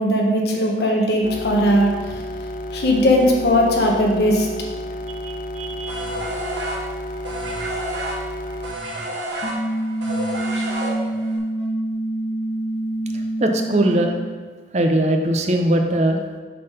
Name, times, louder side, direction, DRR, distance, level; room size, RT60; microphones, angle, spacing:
voice 1, 0.0-2.2 2.7-4.5, equal, 65° left, -1 dB, 1.1 m, -18 dB
sound 1, 1.2-8.7, equal, 50° left, 0.3 m, -31 dB
voice 2, 5.2-6.1 13.4-14.1 14.7-16.2, right 1 dB, 35° right, 4 dB, 0.5 m, -20 dB
sound 2, 5.9-11.4, right 1 dB, 80° right, 1.4 m, -30 dB
sound 3, 9.4-14.4, right 1 dB, 90° left, 1.5 m, -26 dB
6.6 x 3.7 x 5.6 m, 1.4 s
head